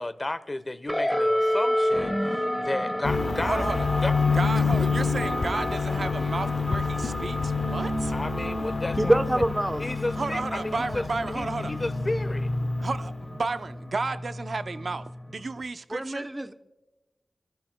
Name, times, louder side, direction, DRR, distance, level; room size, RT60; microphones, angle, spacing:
voice 1, 0.0-3.6 4.0-4.1 4.5-4.9 8.1-9.2 9.8-12.5, left 2 dB, 40° left, 0.9 m, -33 dB
sound 1, 0.9-15.6, equal, ahead, 1.1 m, -31 dB
sound 2, 3.0-13.3, left 5 dB, 70° left, 0.7 m, -28 dB
voice 2, 3.4-3.9 4.3-8.1 10.2-11.7 12.8-16.3, right 3 dB, 75° right, 0.6 m, -32 dB
voice 3, 9.0-9.8 15.9-16.5, right 1 dB, 20° right, 0.9 m, -25 dB
28.0 x 15.0 x 2.2 m
cardioid pair, 50°, 0 cm